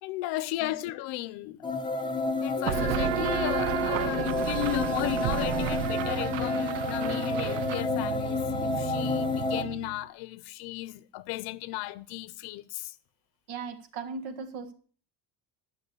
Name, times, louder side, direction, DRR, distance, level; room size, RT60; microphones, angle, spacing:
voice 1, 0.0-1.7 2.4-12.9, left 17 dB, 70° left, 0.8 m, -35 dB
sound 1, 1.6-9.6, left 3 dB, 10° left, 0.8 m, -30 dB
Keyboard (musical), 2.6-5.4, right 4 dB, 25° right, 4.0 m, -46 dB
sound 2, 2.7-10.0, right 15 dB, 85° right, 0.7 m, -32 dB
voice 2, 13.5-14.7, right 5 dB, 65° right, 1.7 m, -37 dB
10.5 x 6.5 x 6.9 m
cardioid pair, 160°, 40 cm